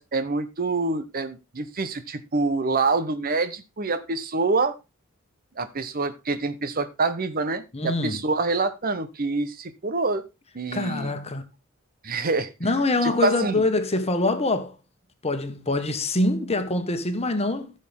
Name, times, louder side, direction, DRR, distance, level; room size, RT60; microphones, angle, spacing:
voice 1, 0.0-4.8 5.6-10.3 10.5-11.1 12.0-12.5 13.0-13.7, right 3 dB, 45° right, 0.9 m, -26 dB
voice 2, 7.7-8.2 10.7-11.4 12.6-14.7 15.2-17.7, left 2 dB, 30° left, 1.5 m, -24 dB
15.0 x 6.6 x 3.6 m
head